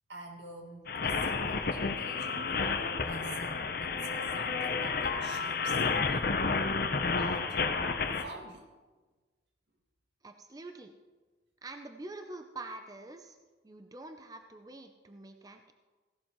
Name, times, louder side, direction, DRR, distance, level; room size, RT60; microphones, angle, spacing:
voice 1, 0.1-6.4 7.2-7.6 8.0-8.7, right 2 dB, 80° right, 1 dB, 2.0 m, -47 dB
sound 1, 0.9-8.2, left 4 dB, 55° left, 0.7 m, -31 dB
voice 2, 10.2-10.9 11.6-13.4 13.6-15.7, right 2 dB, 20° right, 6 dB, 0.5 m, -46 dB
16.0 x 11.5 x 3.1 m, 1.3 s
head